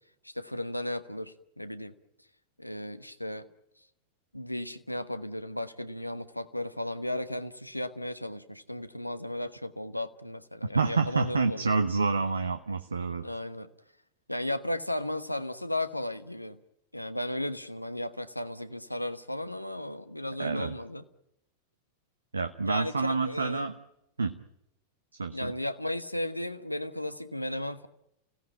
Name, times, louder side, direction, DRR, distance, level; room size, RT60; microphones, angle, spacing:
voice 1, 0.2-1.9 2.6-3.5 4.3-11.7 13.2-13.7 14.3-16.6 16.9-21.0 22.6-23.7 25.3-27.9, left 1 dB, 90° left, 11 dB, 1.2 m, -35 dB
voice 2, 10.7-13.3 20.4-20.7 22.3-23.7 24.2-24.4 25.2-25.5, right 4 dB, 75° right, 8 dB, 1.0 m, -28 dB
30.0 x 17.0 x 9.1 m, 0.83 s
figure-of-eight pair, 90°, 0 cm